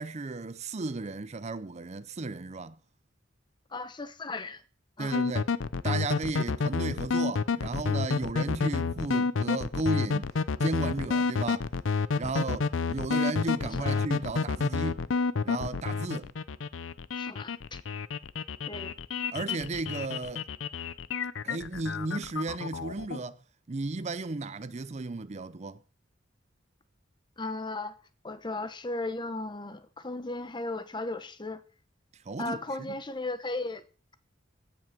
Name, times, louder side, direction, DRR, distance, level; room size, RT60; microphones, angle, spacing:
voice 1, 0.0-2.8 5.0-5.5 5.8-10.3 10.6-11.7 12.1-15.0 15.4-16.3 19.3-20.4 21.4-23.4 23.7-25.8 32.2-32.9, right 3 dB, 35° right, 0.5 m, -34 dB
voice 2, 3.7-4.6 5.0-5.2 13.8-14.0 17.1-17.8 18.7-18.9 27.4-27.9 28.2-31.6 32.4-33.8, left 2 dB, 25° left, 0.9 m, -36 dB
sound 1, 5.1-23.2, left 4 dB, 85° left, 0.6 m, -29 dB
16.5 x 6.2 x 6.7 m
head